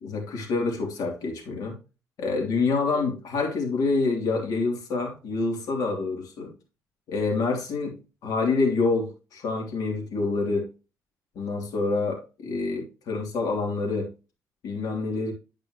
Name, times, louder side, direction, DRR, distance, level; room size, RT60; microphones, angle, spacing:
voice 1, 0.0-1.8 2.2-6.5 7.1-8.0 8.2-10.7 11.3-14.1 14.6-15.3, left 3 dB, 80° left, 3.0 m, -27 dB
11.5 x 5.3 x 3.0 m
cardioid pair, 110°, 6 cm